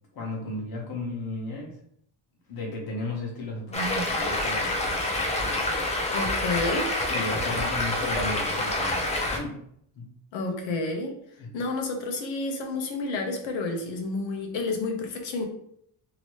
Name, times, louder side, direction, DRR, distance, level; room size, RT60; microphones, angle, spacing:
voice 1, 0.1-1.8 2.5-5.9 7.1-9.6 9.9-10.1 11.4-11.5, left 2 dB, 50° left, -1 dB, 1.1 m, -35 dB
Stream, 3.7-9.4, left 1 dB, 15° left, 0.3 m, -27 dB
voice 2, 6.1-6.9 10.3-11.2 11.5-15.4, left 3 dB, 80° left, 3 dB, 0.9 m, -30 dB
2.9 x 2.8 x 3.0 m, 0.69 s
cardioid pair, 165°, 45 cm